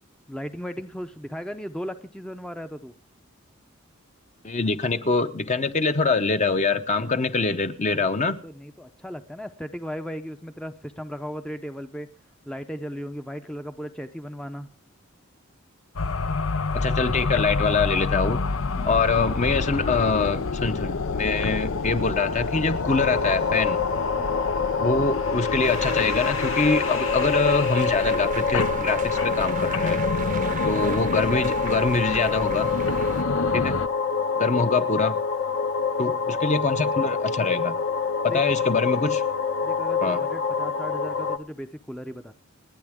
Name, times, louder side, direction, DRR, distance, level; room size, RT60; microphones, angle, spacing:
voice 1, 0.3-2.9 8.2-12.1 12.5-14.7 18.7-19.0 24.1-24.4 30.3-30.6 38.3-38.5 39.6-42.3, equal, 5° left, 0.6 m, -36 dB
voice 2, 4.4-8.4 16.7-18.4 18.8-23.8 24.8-30.0 30.7-32.7 33.5-33.8 34.4-35.2 36.0-37.7 38.2-39.2 40.0-40.2, left 4 dB, 35° left, 0.9 m, -24 dB
sound 1, 16.0-33.9, left 4 dB, 75° left, 0.7 m, -29 dB
sound 2, 22.8-41.4, left 5 dB, 55° left, 1.1 m, -26 dB
sound 3, 25.6-33.2, right 6 dB, 40° right, 0.7 m, -37 dB
29.0 x 9.8 x 3.6 m
head